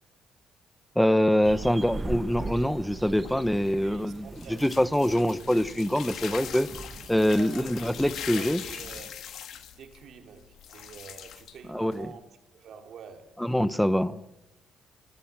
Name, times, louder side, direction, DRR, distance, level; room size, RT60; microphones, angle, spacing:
voice 1, 0.9-4.3 4.6-6.7 7.1-8.6 11.7-12.1 13.4-14.1, equal, 5° left, 1.0 m, -24 dB
sound 1, 1.4-9.1, right 3 dB, 25° right, 1.5 m, -41 dB
sound 2, 3.1-12.2, left 9 dB, 75° left, 1.7 m, -42 dB
voice 2, 3.7-5.0 6.9-7.6 8.0-8.1 8.3-9.3 9.8-12.3 12.5-13.4 13.8-14.2, right 7 dB, 70° right, 2.9 m, -47 dB
25.0 x 17.5 x 7.5 m
cardioid pair, 90°, 0 cm